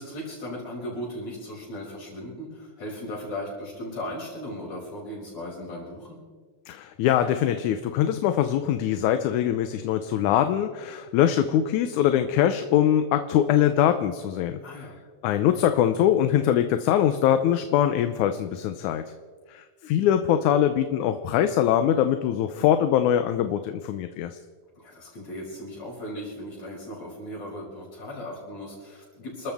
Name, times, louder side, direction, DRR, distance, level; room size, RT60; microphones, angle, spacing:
voice 1, 0.0-6.2 14.6-15.0 24.8-29.5, left 1 dB, 60° left, -5 dB, 7.9 m, -37 dB
voice 2, 6.7-14.8 15.2-19.0 19.5-24.4, left 10 dB, 80° left, 9 dB, 2.2 m, -23 dB
29.0 x 13.5 x 3.6 m, 1.5 s
omnidirectional pair, 3.4 m